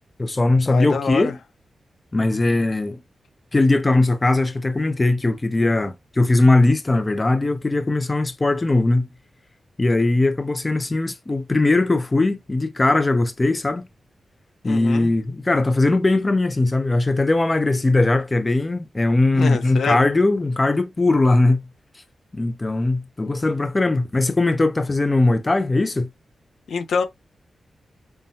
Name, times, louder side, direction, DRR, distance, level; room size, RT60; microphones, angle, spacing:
voice 1, 0.2-1.4 2.1-3.0 3.5-9.1 9.8-13.8 14.6-21.6 22.3-26.1, left 2 dB, 20° left, 0.4 m, -19 dB
voice 2, 0.7-1.3 14.6-15.1 19.3-20.0 26.7-27.0, left 5 dB, 75° left, 0.7 m, -25 dB
5.3 x 2.1 x 2.7 m
wide cardioid pair, 170°, 0 cm